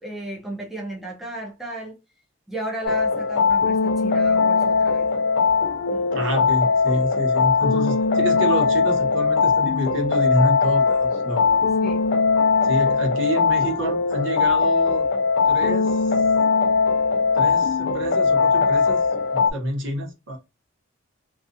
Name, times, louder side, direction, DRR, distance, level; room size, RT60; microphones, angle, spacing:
voice 1, 0.0-1.9 2.5-5.1 5.9-6.1 11.8-12.1, right 1 dB, ahead, 0.5 m, -34 dB
sound 1, 2.8-19.5, left 5 dB, 55° left, 0.3 m, -20 dB
voice 2, 6.1-11.6 12.6-15.1 15.5-16.1 17.3-19.1 19.3-20.4, right 1 dB, 65° right, 0.9 m, -28 dB
2.4 x 2.3 x 2.5 m
head